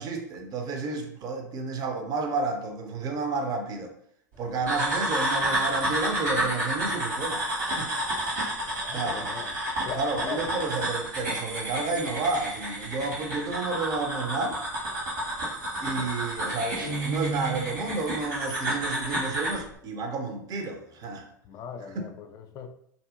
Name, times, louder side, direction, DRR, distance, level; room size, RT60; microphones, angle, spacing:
voice 1, 0.0-3.9 4.4-7.4 7.8-7.9 8.9-9.3 10.0-14.6 15.8-21.2 21.9-22.1, right 3 dB, 40° right, 0.5 m, -31 dB
sound 1, 4.7-19.6, right 1 dB, 70° right, 1.3 m, -30 dB
voice 2, 8.8-9.6 9.8-10.5 21.5-22.7, left 6 dB, 40° left, 0.3 m, -39 dB
Guitar, 16.8-17.9, right 4 dB, 90° right, 0.5 m, -32 dB
2.7 x 2.6 x 2.5 m
hypercardioid pair, 85°, 10 cm